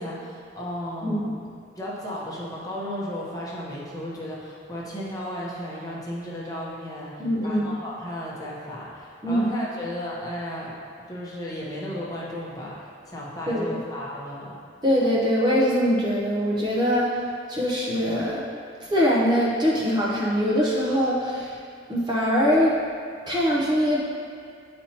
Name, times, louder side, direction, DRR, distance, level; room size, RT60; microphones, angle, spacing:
voice 1, 0.0-1.4 1.8-10.8 11.1-14.6, equal, 20° left, -5 dB, 0.9 m, -34 dB
voice 2, 7.2-7.7 9.2-9.4 13.5-13.8 14.8-18.4 18.8-21.6 21.9-22.8 23.3-24.0, equal, 25° right, -6 dB, 0.7 m, -23 dB
8.8 x 4.3 x 2.9 m, 2.3 s
head